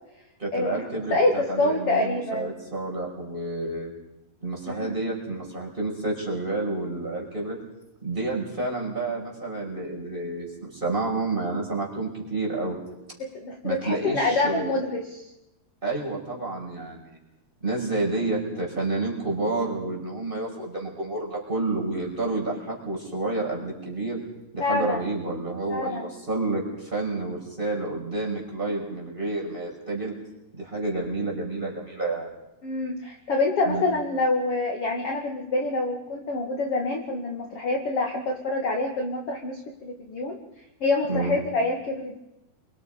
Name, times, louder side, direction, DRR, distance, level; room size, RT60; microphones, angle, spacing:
voice 1, 0.4-3.9 4.4-7.6 8.0-12.8 13.6-14.7 15.8-17.2 17.6-24.2 24.5-30.1 30.5-32.3 33.7-33.8 41.1-41.4, right 2 dB, 10° right, -2 dB, 5.7 m, -29 dB
voice 2, 1.1-2.5 4.7-5.0 13.2-15.2 24.6-25.0 25.7-26.1 32.6-40.4 40.8-42.2, left 2 dB, 45° left, 1 dB, 2.5 m, -26 dB
28.0 x 25.0 x 5.2 m, 0.91 s
omnidirectional pair, 4.6 m